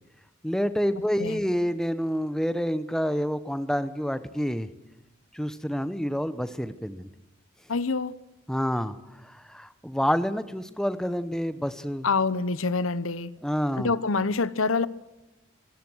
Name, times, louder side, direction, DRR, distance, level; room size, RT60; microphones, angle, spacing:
voice 1, 0.4-4.7 5.3-7.1 8.5-8.9 9.2-12.1 13.4-13.9, equal, 5° left, 1.0 m, -28 dB
voice 2, 7.7-8.1 12.0-13.3 13.8-14.9, left 4 dB, 90° left, 1.0 m, -26 dB
26.0 x 18.0 x 6.4 m
head